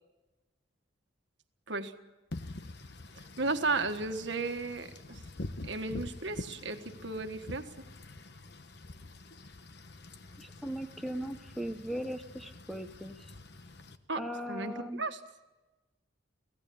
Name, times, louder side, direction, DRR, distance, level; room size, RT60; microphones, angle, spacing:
Wind / Rain, 2.3-14.0, left 2 dB, 55° left, 1.2 m, -46 dB
voice 1, 3.4-5.2 5.6-7.6 14.1-15.2, right 3 dB, 65° right, 7 dB, 1.5 m, -34 dB
voice 2, 10.4-13.3 14.2-15.0, equal, ahead, 8 dB, 0.7 m, -38 dB
24.5 x 17.0 x 8.5 m, 1.1 s
head